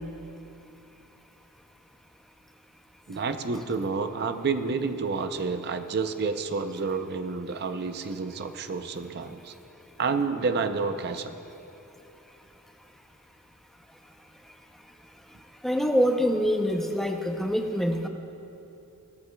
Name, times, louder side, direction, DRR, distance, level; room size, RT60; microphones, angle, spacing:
voice 1, 3.1-9.5 10.0-11.4, right 4 dB, 50° right, 9 dB, 0.5 m, -29 dB
voice 2, 15.6-18.1, equal, ahead, 4 dB, 0.5 m, -25 dB
17.5 x 14.0 x 2.3 m, 2.9 s
head